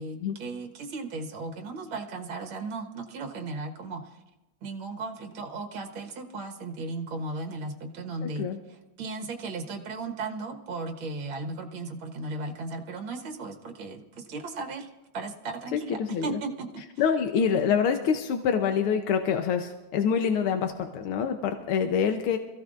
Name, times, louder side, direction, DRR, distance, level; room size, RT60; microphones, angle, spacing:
voice 1, 0.0-4.2 4.6-14.9 15.1-16.8, right 3 dB, 70° right, 3 dB, 2.2 m, -36 dB
voice 2, 15.7-16.3 17.0-22.4, left 7 dB, 90° left, 6 dB, 1.8 m, -26 dB
26.0 x 15.5 x 2.5 m, 1.0 s
omnidirectional pair, 2.3 m